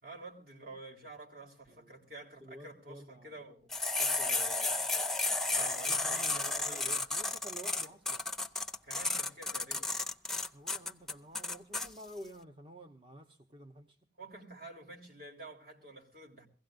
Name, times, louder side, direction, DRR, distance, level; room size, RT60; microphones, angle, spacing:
voice 1, 0.0-4.8 5.5-7.0 8.8-9.9 14.2-16.5, right 2 dB, 55° right, 3.4 m, -50 dB
voice 2, 2.4-3.4 5.9-8.2 10.5-14.0, equal, 30° right, 0.8 m, -50 dB
sound 1, 3.7-11.9, left 3 dB, ahead, 0.6 m, -33 dB
22.5 x 16.5 x 2.5 m
head